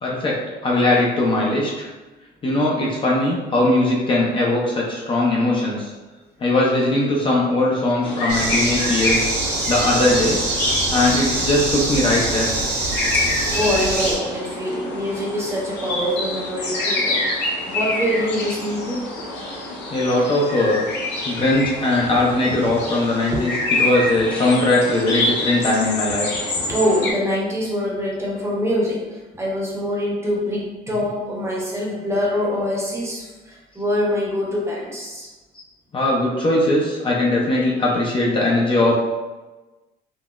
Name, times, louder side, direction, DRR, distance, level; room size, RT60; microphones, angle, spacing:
voice 1, 0.0-0.4 0.6-1.9 2.4-5.9 6.4-9.3 9.7-10.4 10.9-12.6 19.9-20.9 21.3-26.3 35.9-38.9, left 2 dB, 30° left, -4 dB, 0.5 m, -20 dB
sound 1, 8.0-27.1, left 2 dB, 85° left, 0.7 m, -27 dB
sound 2, 8.3-14.2, right 2 dB, 65° right, 1.4 m, -24 dB
voice 2, 13.1-17.2 17.6-19.1 26.5-35.3, equal, 15° right, -4 dB, 0.8 m, -24 dB
3.7 x 2.0 x 2.4 m, 1.2 s
cardioid pair, 110°, 17 cm